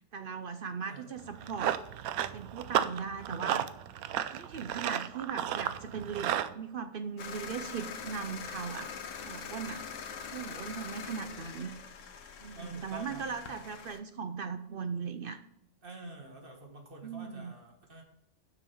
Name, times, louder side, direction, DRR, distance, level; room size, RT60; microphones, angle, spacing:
voice 1, 0.1-1.8 2.3-3.7 4.3-8.9 9.3-11.8 12.4-15.4 17.0-17.5, right 6 dB, 60° right, 9 dB, 0.6 m, -39 dB
voice 2, 0.8-1.1 12.5-13.7 15.8-18.0, right 2 dB, 40° right, 2 dB, 1.7 m, -48 dB
Run, 1.2-6.5, right 11 dB, 85° right, 1.0 m, -33 dB
sound 1, 7.2-14.0, left 6 dB, 65° left, 1.2 m, -43 dB
6.6 x 6.1 x 6.0 m, 0.76 s
omnidirectional pair, 1.5 m